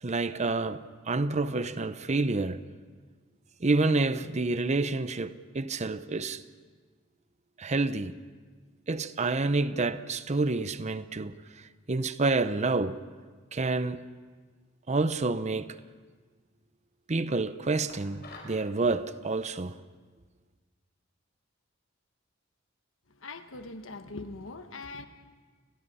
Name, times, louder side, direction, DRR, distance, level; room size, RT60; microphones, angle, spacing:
voice 1, 0.0-2.6 3.6-6.4 7.6-8.1 8.9-11.3 11.9-13.0 13.5-14.0 14.9-15.8 17.1-19.7, right 3 dB, 35° right, 0.7 m, -28 dB
sound 1, 17.9-18.6, left 2 dB, 55° left, 5.0 m, -47 dB
voice 2, 23.1-25.1, left 3 dB, 75° left, 1.4 m, -42 dB
30.0 x 21.0 x 5.6 m
head